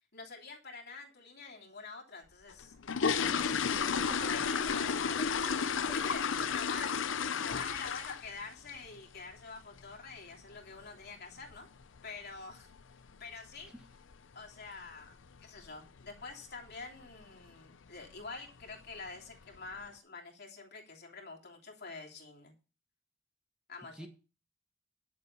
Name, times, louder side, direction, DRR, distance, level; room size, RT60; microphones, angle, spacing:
voice 1, 0.1-5.2 5.9-6.2 6.5-11.7 12.0-12.7 13.2-13.7 14.3-22.5 23.7-24.1, left 4 dB, 55° left, 1 dB, 3.2 m, -47 dB
sound 1, 2.5-8.4 8.7-9.0 9.3-9.4 9.8-9.9 10.3-10.5 10.8-10.9 11.5-11.6 11.8-12.0 12.5-12.8 13.1-13.2 13.6-13.8 14.1-14.2 14.6-14.7 15.3-15.7 16.0-16.3 16.7-16.8 17.2-17.3 18.1-18.2 18.6-19.1 19.5-19.6, left 6 dB, 75° left, 0.6 m, -32 dB
voice 2, 3.1-3.6 3.9-4.9 5.4-6.0 6.4-6.6 6.9-7.0 13.7-13.8 14.6-14.8 23.9-24.1, equal, 5° right, 3 dB, 1.5 m, -49 dB
11.0 x 7.2 x 5.4 m, 0.33 s
head